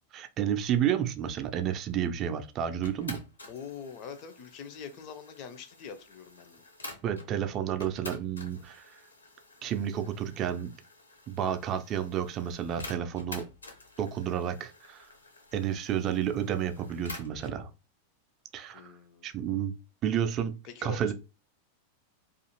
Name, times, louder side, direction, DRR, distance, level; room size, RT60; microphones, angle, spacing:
voice 1, 0.1-3.2 7.0-9.0 9.6-10.7 11.3-13.4 14.0-15.1 15.5-17.7 18.5-18.9 19.2-19.7 20.0-20.5 20.8-21.1, right 9 dB, 35° right, 0.3 m, -31 dB
sound 1, 2.8-7.3 7.8-17.6, left 2 dB, 75° left, 0.7 m, -49 dB
voice 2, 3.5-6.6 18.7-19.3 20.6-21.1, left 6 dB, 40° left, 0.5 m, -44 dB
2.4 x 2.4 x 2.8 m
figure-of-eight pair, 90°, 0 cm